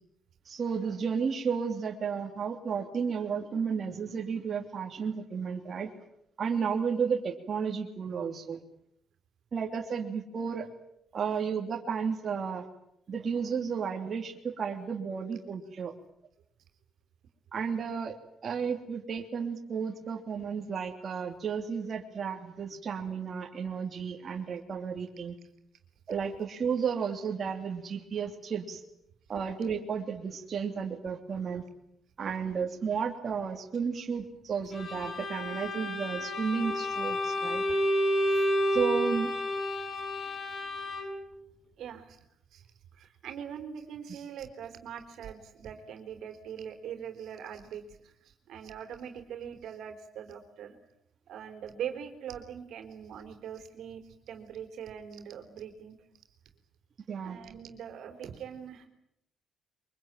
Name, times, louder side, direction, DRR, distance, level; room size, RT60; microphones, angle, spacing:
voice 1, 0.4-5.9 6.4-8.6 9.5-10.7 11.1-12.6 13.1-15.9 17.5-18.1 18.4-25.4 26.1-28.8 29.3-31.6 32.2-37.6 38.7-39.3 57.1-57.4, right 6 dB, 50° right, 1 dB, 3.1 m, -33 dB
Bowed string instrument, 34.7-41.3, equal, 45° left, 8.0 m, -30 dB
voice 2, 38.2-38.8 41.8-42.3 42.5-42.6 42.9-50.8 51.3-56.0 57.2-58.9, right 8 dB, 75° right, 6 dB, 3.9 m, -42 dB
24.0 x 23.5 x 9.2 m, 0.76 s
cardioid pair, 90°, 0 cm